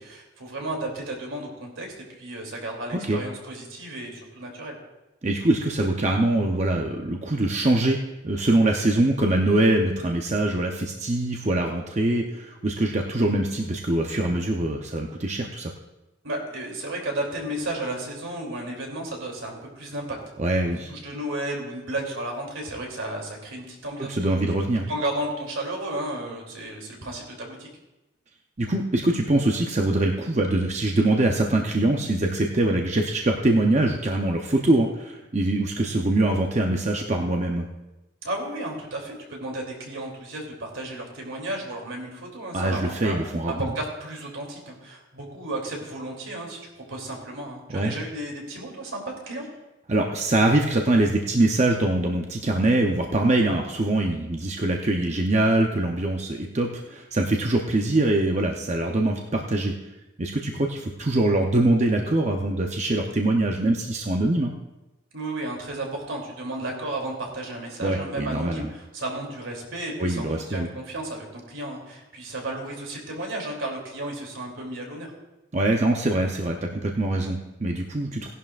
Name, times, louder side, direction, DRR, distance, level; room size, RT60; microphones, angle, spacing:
voice 1, 0.0-4.8 16.2-20.2 20.7-24.2 24.9-27.7 38.2-43.2 43.6-49.4 65.1-75.1, right 1 dB, 80° right, 0 dB, 3.0 m, -33 dB
voice 2, 5.2-8.0 8.2-15.7 20.4-20.9 24.0-24.9 28.6-37.7 42.5-43.7 47.7-47.9 49.9-59.7 60.2-64.5 67.8-68.7 70.0-70.7 75.5-78.3, right 2 dB, 35° right, 2 dB, 0.7 m, -23 dB
17.5 x 11.0 x 2.5 m, 1.0 s
head